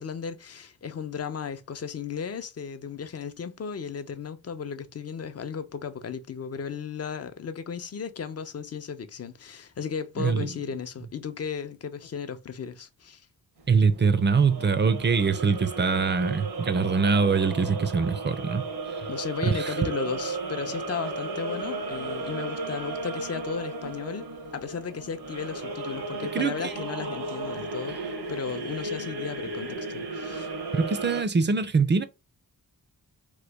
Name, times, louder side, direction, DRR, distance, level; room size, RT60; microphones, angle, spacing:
voice 1, 0.0-13.3 19.1-24.3 24.5-28.0 28.3-30.5, left 6 dB, 40° left, 0.5 m, -35 dB
voice 2, 10.2-10.5 13.7-18.6 19.5-19.8 26.3-26.7 30.7-32.1, right 5 dB, 30° right, 0.5 m, -23 dB
sound 1, 13.6-31.2, right 3 dB, 85° right, 1.0 m, -35 dB
3.1 x 2.2 x 3.3 m
cardioid pair, 75°, 38 cm